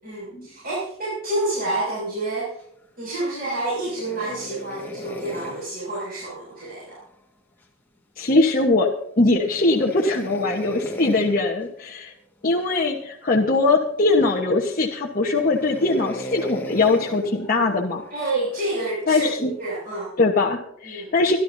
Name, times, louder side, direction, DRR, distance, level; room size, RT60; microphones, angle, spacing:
voice 1, 0.0-2.6 3.0-7.0 18.1-20.1 20.8-21.1, right 2 dB, 45° right, -7 dB, 6.5 m, -28 dB
sound 1, 3.8-7.1 9.4-11.4 12.6-13.0 13.6-13.7 14.4-14.9 15.4-18.8 19.6-20.0, left 1 dB, 10° left, 1.7 m, -36 dB
voice 2, 8.2-8.9 9.2-12.1 12.4-18.0 19.1-19.6 20.2-21.4, left 3 dB, 40° left, -2 dB, 1.2 m, -21 dB
26.0 x 12.0 x 2.7 m, 0.72 s
head